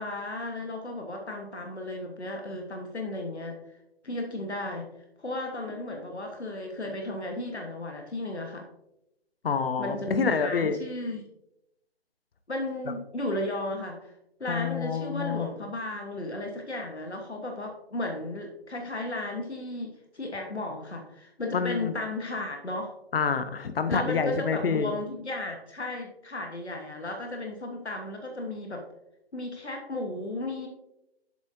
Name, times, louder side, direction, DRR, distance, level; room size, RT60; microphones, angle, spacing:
voice 1, 0.0-3.6 4.0-4.9 5.2-8.7 9.8-11.3 12.5-14.1 14.4-22.9 23.9-28.8 29.3-30.7, left 2 dB, 85° left, 2 dB, 1.3 m, -34 dB
voice 2, 9.4-10.8 14.5-15.5 21.5-21.9 23.1-25.0, left 5 dB, 60° left, 10 dB, 0.7 m, -27 dB
7.3 x 7.2 x 2.6 m, 0.86 s
figure-of-eight pair, 145°, 32 cm